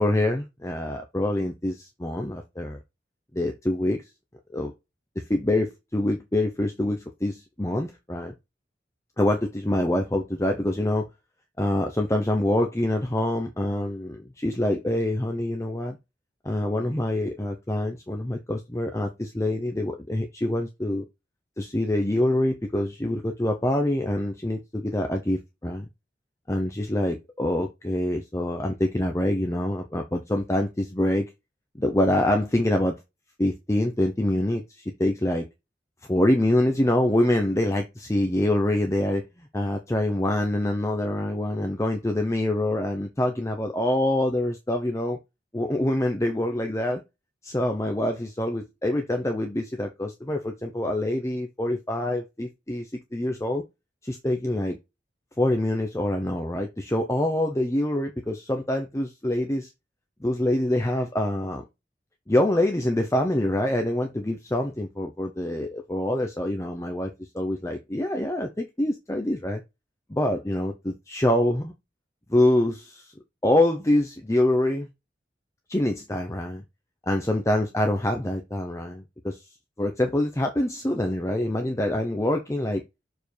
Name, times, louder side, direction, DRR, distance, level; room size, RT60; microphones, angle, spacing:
voice 1, 0.0-2.8 3.3-4.0 4.5-4.7 5.3-8.3 9.2-11.0 11.6-16.0 16.4-21.0 21.6-25.9 26.5-31.3 31.8-32.9 33.4-35.5 36.1-45.2 45.5-47.0 47.4-53.6 54.0-54.8 55.4-59.7 60.2-61.6 62.3-69.6 70.1-71.7 72.3-73.1 73.4-74.9 75.7-76.6 77.1-79.4 79.8-82.8, left 1 dB, 15° left, 0.8 m, -25 dB
6.8 x 4.8 x 3.4 m
head